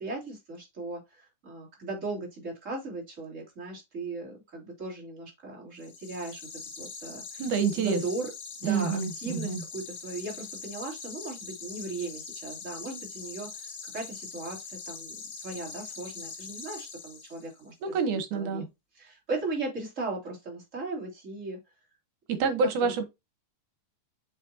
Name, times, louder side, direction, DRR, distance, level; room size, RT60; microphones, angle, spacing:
voice 1, 0.0-6.4 6.8-7.4 7.8-8.3 8.6-17.9 18.3-18.7 18.9-21.6 22.3-22.5 22.8-23.1, right 3 dB, 25° right, 3.0 m, -37 dB
sound 1, 5.8-17.6, left 5 dB, 45° left, 1.7 m, -42 dB
voice 2, 7.4-8.0 8.6-9.6 17.8-18.7 22.3-23.0, right 5 dB, 75° right, 2.6 m, -27 dB
7.4 x 5.3 x 2.8 m
omnidirectional pair, 3.6 m